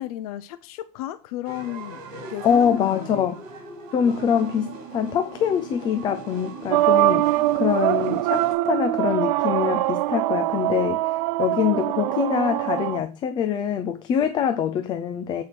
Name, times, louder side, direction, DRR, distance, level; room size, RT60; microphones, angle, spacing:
voice 1, 0.0-2.0 2.3-3.3 7.5-7.6, left 13 dB, 75° left, 0.6 m, -33 dB
sound 1, 1.4-8.5, right 4 dB, 55° right, 4.1 m, -39 dB
voice 2, 2.4-3.4 3.9-15.4, left 8 dB, 25° left, 0.5 m, -24 dB
sound 2, 6.7-13.0, right 17 dB, 90° right, 0.4 m, -23 dB
7.9 x 4.7 x 5.9 m
cardioid pair, 175°, 19 cm